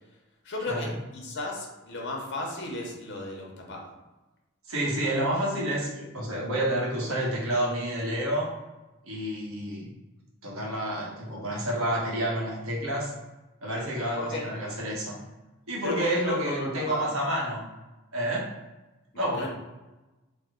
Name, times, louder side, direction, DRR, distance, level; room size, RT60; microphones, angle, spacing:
voice 1, 0.4-3.9 14.2-14.4 15.8-17.1 19.3-19.5, left 2 dB, 55° left, 0 dB, 0.8 m, -34 dB
voice 2, 4.7-8.5 9.0-9.9 10.4-13.1 13.6-15.2 15.7-17.7 18.1-18.5 19.1-19.5, right 1 dB, 80° right, -3 dB, 1.0 m, -29 dB
3.5 x 2.1 x 3.6 m, 1.1 s
head